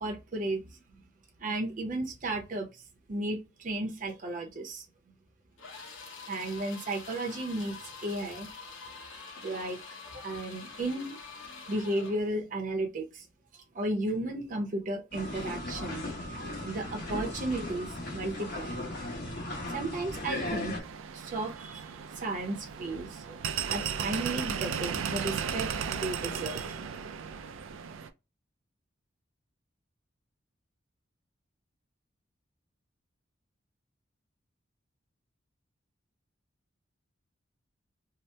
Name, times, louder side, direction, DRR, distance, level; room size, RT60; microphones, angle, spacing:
voice 1, 0.0-0.7 1.4-2.7 3.1-4.9 6.3-8.5 9.4-9.8 10.1-13.3 13.7-16.0 16.6-18.7 19.7-20.8 21.1-21.9 22.2-26.8, right 2 dB, 40° right, 0.6 m, -34 dB
sound 1, 5.6-12.3, left 4 dB, 80° left, 0.9 m, -46 dB
sound 2, 15.1-20.8, left 1 dB, 55° left, 1.0 m, -37 dB
sound 3, 20.8-28.1, right 7 dB, 80° right, 0.4 m, -35 dB
2.8 x 2.0 x 3.2 m
head